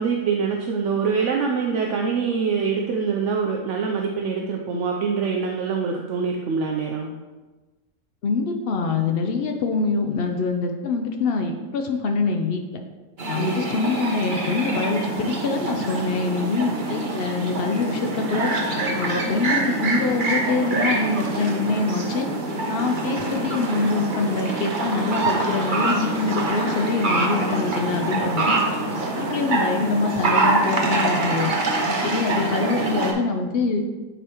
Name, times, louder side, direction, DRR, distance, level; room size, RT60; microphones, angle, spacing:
voice 1, 0.0-7.1 13.4-13.7 32.3-32.5, right 5 dB, 65° right, 1 dB, 0.7 m, -24 dB
voice 2, 8.2-12.8 13.3-18.5 18.9-22.3 22.7-28.6 29.2-31.5 31.9-33.8, left 4 dB, 90° left, 4 dB, 0.5 m, -25 dB
sound 1, 13.2-33.1, right 2 dB, 40° right, 0.9 m, -25 dB
9.2 x 4.1 x 2.9 m, 1.2 s
omnidirectional pair, 1.7 m